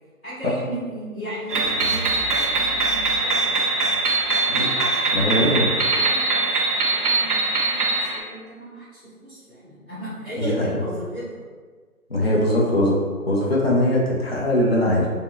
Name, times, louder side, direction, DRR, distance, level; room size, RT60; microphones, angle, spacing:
voice 1, 0.2-3.6 4.5-11.4 12.1-12.6, right 1 dB, 5° left, -21 dB, 0.9 m, -36 dB
sound 1, 1.5-8.2, right 3 dB, 75° right, 0.7 m, -22 dB
voice 2, 5.1-5.7 10.4-10.7 12.1-13.0 13.3-15.1, left 1 dB, 45° left, -4 dB, 0.5 m, -20 dB
3.4 x 2.0 x 2.2 m, 1.5 s
figure-of-eight pair, 160°, 45 cm